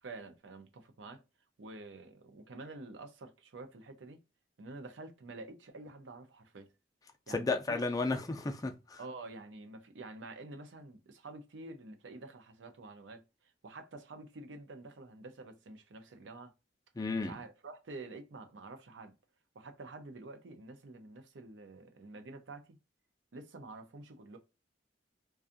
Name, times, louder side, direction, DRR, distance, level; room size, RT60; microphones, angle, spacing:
voice 1, 0.0-1.2 1.6-4.2 4.6-6.7 7.3-7.8 9.0-16.5 17.2-19.1 19.5-22.8 23.3-24.4, right 2 dB, 75° right, 0.6 m, -48 dB
voice 2, 7.3-9.0 17.0-17.3, left 3 dB, 20° left, 0.4 m, -33 dB
2.5 x 2.3 x 2.5 m
head